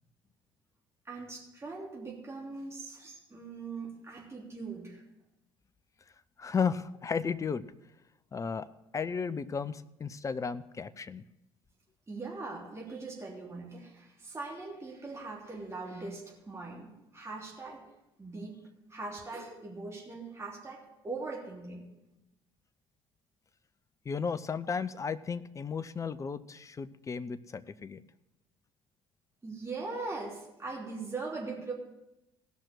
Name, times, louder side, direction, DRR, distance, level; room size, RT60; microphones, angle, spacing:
voice 1, 1.0-5.0 12.1-17.8 18.2-18.6 18.9-21.9 29.4-31.7, right 3 dB, 20° right, -2 dB, 3.1 m, -41 dB
voice 2, 6.4-7.6 8.3-8.7 8.9-11.2 24.1-28.0, left 5 dB, 20° left, 14 dB, 0.5 m, -34 dB
16.5 x 5.9 x 6.4 m, 0.90 s
figure-of-eight pair, 55°, 14 cm